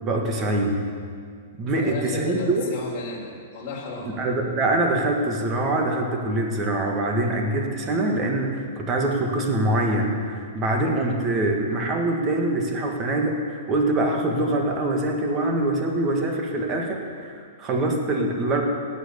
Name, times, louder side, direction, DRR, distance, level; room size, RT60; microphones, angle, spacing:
voice 1, 0.0-0.9 1.6-2.7 4.0-18.6, right 2 dB, 25° right, 2 dB, 1.8 m, -24 dB
voice 2, 1.6-4.1, left 3 dB, 35° left, -3 dB, 3.6 m, -34 dB
18.0 x 6.4 x 8.2 m, 2.1 s
hypercardioid pair, 155°, 0 cm